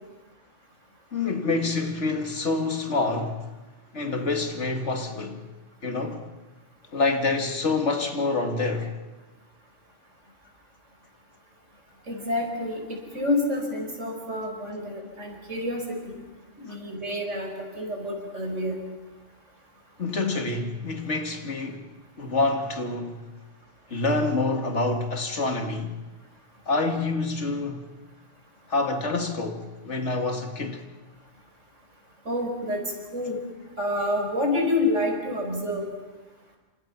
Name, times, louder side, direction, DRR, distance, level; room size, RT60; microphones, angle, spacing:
voice 1, 1.1-3.5 3.9-5.5 5.8-6.3 6.9-8.9 20.0-21.9 22.2-23.2 23.9-26.0 26.7-27.9 28.7-30.8, left 3 dB, 65° left, 2.3 m, -27 dB
voice 2, 12.1-16.2 16.6-18.8 32.3-32.8 33.1-33.4 33.8-35.9, left 1 dB, 75° right, 5.7 m, -28 dB
28.0 x 26.0 x 5.9 m
omnidirectional pair, 1.3 m